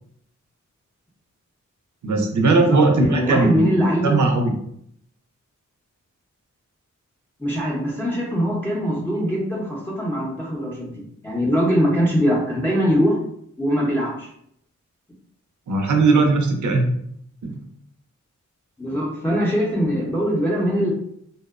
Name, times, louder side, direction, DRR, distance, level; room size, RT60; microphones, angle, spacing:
voice 1, 2.0-4.5 15.7-17.0 17.4-17.6, right 3 dB, 65° right, 4 dB, 0.5 m, -19 dB
voice 2, 2.5-4.1 7.4-13.2 13.6-14.3 18.8-20.9, equal, 5° left, -3 dB, 0.6 m, -22 dB
2.7 x 2.1 x 2.3 m, 0.70 s
cardioid pair, 50°, 31 cm